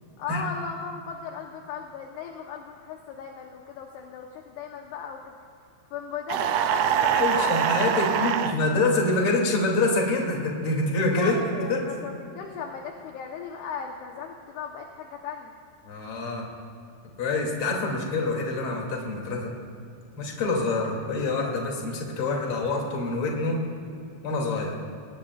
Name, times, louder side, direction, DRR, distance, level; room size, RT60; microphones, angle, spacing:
voice 1, 0.2-5.3 5.9-7.7 7.9-8.3 11.1-15.5, left 6 dB, 75° left, 1 dB, 2.6 m, -37 dB
sound 1, 6.3-8.6, right 9 dB, 85° right, 2.2 m, -24 dB
voice 2, 7.1-11.8 15.8-16.4 17.2-19.5 20.2-23.6 24.2-24.7, left 2 dB, 35° left, -1 dB, 2.7 m, -26 dB
26.5 x 19.0 x 2.4 m, 2.6 s
omnidirectional pair, 5.5 m